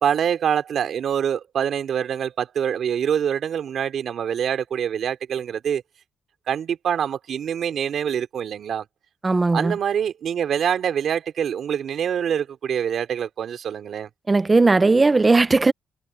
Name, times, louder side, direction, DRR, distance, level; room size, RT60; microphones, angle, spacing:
voice 1, 0.0-5.8 6.5-8.9 9.5-14.1, right 8 dB, 60° right, 3.6 m, -25 dB
voice 2, 9.2-9.7 14.3-15.7, right 3 dB, 25° right, 0.9 m, -17 dB
cardioid pair, 90°, 0 cm